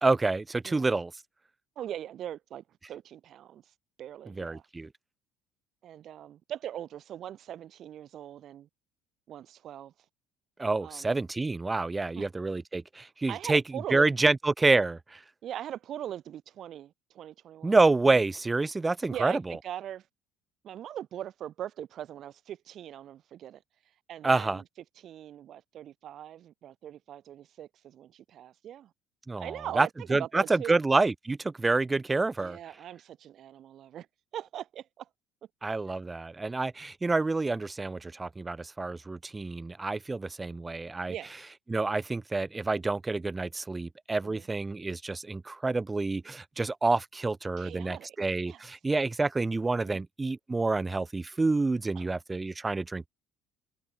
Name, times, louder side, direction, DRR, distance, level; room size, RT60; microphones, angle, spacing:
voice 1, 0.0-1.1 4.3-4.9 10.6-13.6 13.9-15.2 17.6-19.6 24.2-24.6 29.3-32.6 35.6-41.1 41.7-53.1, right 3 dB, 20° right, 0.4 m, -28 dB
voice 2, 1.8-3.6 4.0-4.6 5.8-8.7 9.3-9.9 10.8-11.1 12.1-12.3 13.3-14.3 15.4-17.8 19.1-20.1 20.6-23.6 24.1-24.6 25.0-28.9 29.4-30.8 32.4-34.1 34.3-35.1 41.1-41.3 44.2-44.5 47.6-48.2 48.5-48.6 49.8-50.0 51.9-52.1, right 11 dB, 55° right, 1.0 m, -41 dB
supercardioid pair, 75°, 0 cm